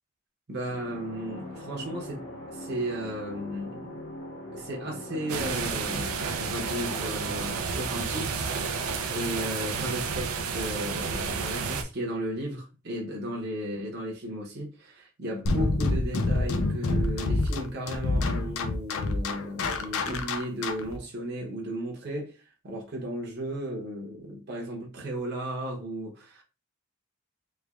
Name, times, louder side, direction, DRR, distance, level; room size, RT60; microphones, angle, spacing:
voice 1, 0.5-2.3 2.5-4.0 4.5-8.4 9.1-26.4, equal, 50° right, 0.9 m, -35 dB
sound 1, 0.6-8.3, left 1 dB, 55° left, 0.9 m, -42 dB
sound 2, 5.3-11.8, right 5 dB, 80° right, 0.5 m, -31 dB
sound 3, 15.5-21.0, left 2 dB, 75° left, 0.5 m, -27 dB
3.3 x 3.3 x 2.3 m
head